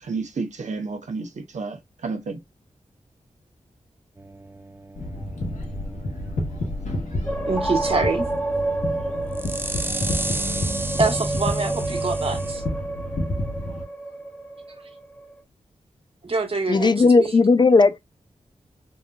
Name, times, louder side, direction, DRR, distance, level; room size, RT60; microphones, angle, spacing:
voice 1, 0.0-2.4, right 4 dB, 70° right, 0.8 m, -31 dB
sound 1, 4.2-12.5, right 2 dB, 15° right, 0.5 m, -33 dB
sound 2, 4.9-13.8, left 1 dB, 80° left, 1.6 m, -30 dB
sound 3, 7.3-15.4, right 2 dB, 15° left, 0.8 m, -30 dB
voice 2, 7.5-8.3 11.0-12.6 16.2-17.3, right 3 dB, 50° right, 1.2 m, -25 dB
voice 3, 16.7-18.0, left 3 dB, 35° left, 0.4 m, -16 dB
3.6 x 2.8 x 2.3 m
wide cardioid pair, 95°, 13 cm